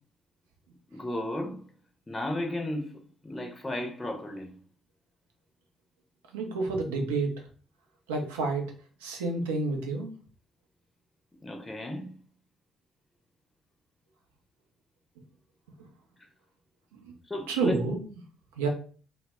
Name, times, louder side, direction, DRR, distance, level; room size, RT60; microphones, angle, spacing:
voice 1, 0.9-1.7 2.1-4.5 11.4-12.2 16.2-16.3 17.3-17.8, left 1 dB, 20° left, 0.6 m, -34 dB
voice 2, 6.3-7.3 8.1-8.6 9.0-10.1 17.5-18.1 18.6-18.7, right 3 dB, 80° right, 0.4 m, -29 dB
2.1 x 2.0 x 3.4 m
figure-of-eight pair, 45°, 0 cm